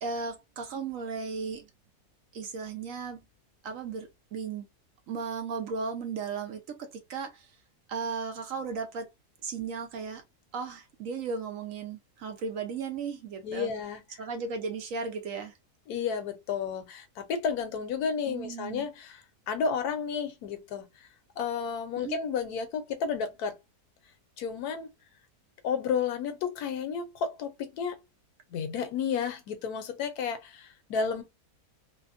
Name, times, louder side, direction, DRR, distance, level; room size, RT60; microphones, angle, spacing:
voice 1, 0.0-1.7 2.3-3.2 3.6-4.6 5.1-7.5 7.9-9.1 9.4-10.2 10.5-13.7 14.2-15.5 18.3-18.9 22.0-22.2, right 5 dB, 65° right, 1.0 m, -35 dB
voice 2, 13.4-14.2 15.9-21.1 21.4-23.5 24.4-24.9 25.6-28.0 28.5-31.2, left 6 dB, 75° left, 1.2 m, -32 dB
3.4 x 2.1 x 2.5 m
omnidirectional pair, 1.6 m